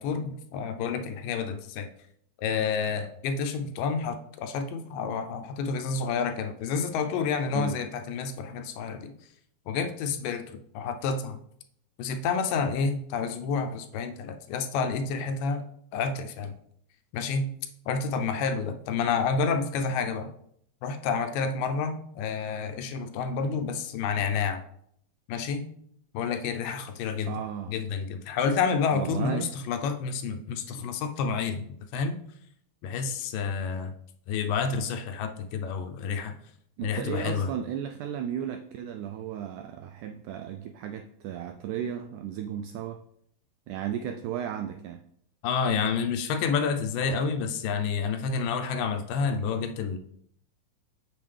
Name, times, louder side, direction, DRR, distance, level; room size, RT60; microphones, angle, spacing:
voice 1, 0.0-1.9 2.4-9.1 9.7-11.4 12.0-15.6 15.9-16.5 17.1-17.5 17.9-20.3 20.8-24.6 25.3-25.7 26.1-27.4 27.7-31.6 31.9-32.2 32.8-33.9 34.3-36.4 36.8-37.5 45.4-50.0, left 5 dB, 80° left, 7 dB, 2.3 m, -29 dB
voice 2, 27.3-27.8 28.9-29.5 36.8-43.0 43.7-45.0, right 9 dB, 85° right, 6 dB, 1.8 m, -34 dB
7.4 x 7.1 x 3.3 m, 0.69 s
omnidirectional pair, 4.0 m